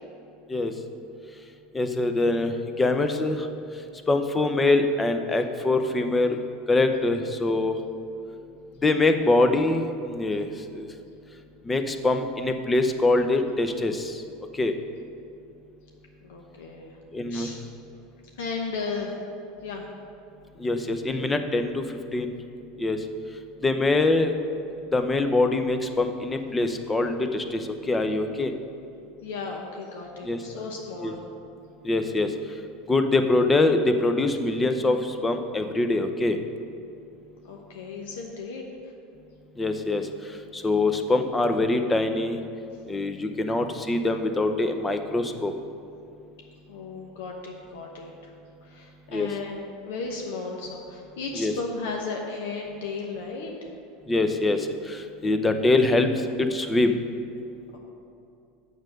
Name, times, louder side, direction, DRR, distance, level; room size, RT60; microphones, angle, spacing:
voice 1, 1.7-2.5 2.8-3.5 4.1-6.4 6.7-7.7 8.8-10.5 10.8-10.9 11.7-14.2 14.6-14.7 17.1-17.5 20.6-21.8 22.1-22.3 22.8-23.0 23.6-24.3 24.9-28.5 30.2-30.4 31.0-31.1 31.8-32.3 32.9-36.4 39.6-40.0 40.5-42.4 42.9-45.5 49.1-49.3 51.3-51.5 54.1-56.1 56.4-57.0, left 2 dB, 15° left, 7 dB, 0.6 m, -23 dB
voice 2, 16.2-17.0 17.3-17.6 18.4-19.2 19.6-19.8 29.2-31.2 37.5-38.6 46.7-48.3 48.6-53.5, left 4 dB, 85° left, 1 dB, 0.9 m, -35 dB
7.2 x 6.4 x 6.4 m, 2.6 s
supercardioid pair, 120°, 0 cm